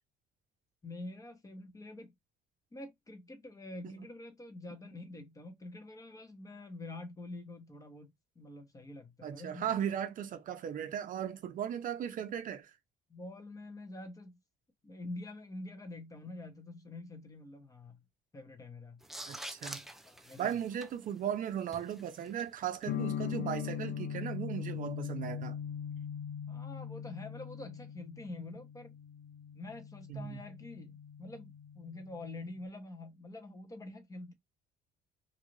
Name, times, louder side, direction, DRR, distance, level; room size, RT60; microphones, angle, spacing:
voice 1, 0.8-2.1 2.7-9.6 13.1-14.4 14.8-18.0 18.3-19.0 20.0-20.5 26.5-28.9 29.5-34.3, left 2 dB, 20° left, 0.9 m, -46 dB
voice 2, 9.2-12.8 19.3-19.9 20.4-25.6 30.1-30.4, right 9 dB, 55° right, 0.5 m, -37 dB
sound 1, 19.0-22.8, right 1 dB, ahead, 0.4 m, -48 dB
sound 2, 22.9-32.6, left 8 dB, 75° left, 0.5 m, -41 dB
2.6 x 2.4 x 3.0 m
cardioid pair, 110°, 17 cm